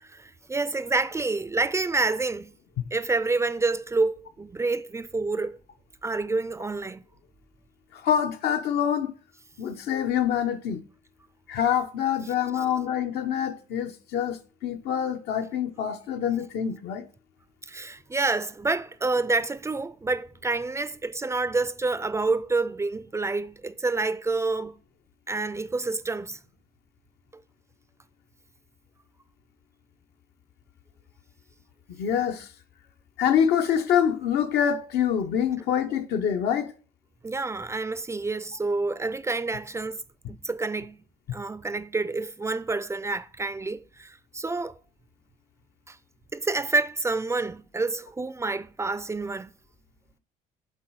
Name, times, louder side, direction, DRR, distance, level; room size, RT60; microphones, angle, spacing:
voice 1, 0.0-2.5 2.9-5.6 6.0-7.0 17.7-24.8 25.3-26.4 37.2-40.0 40.3-41.0 41.3-44.7 45.9-46.0 46.3-49.5, right 3 dB, 15° right, 0.4 m, -28 dB
voice 2, 7.9-9.1 9.6-10.8 11.5-17.0 31.9-32.5 33.2-36.7, left 8 dB, 75° left, 0.9 m, -26 dB
7.4 x 4.0 x 4.7 m
cardioid pair, 110°, 17 cm